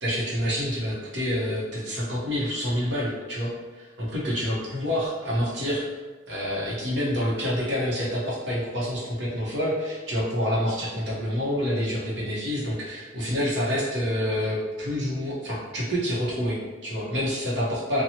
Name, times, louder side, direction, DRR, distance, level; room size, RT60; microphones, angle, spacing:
voice 1, 0.0-6.0 6.3-18.0, equal, 70° right, -6 dB, 0.9 m, -27 dB
2.9 x 2.2 x 2.8 m, 1.3 s
head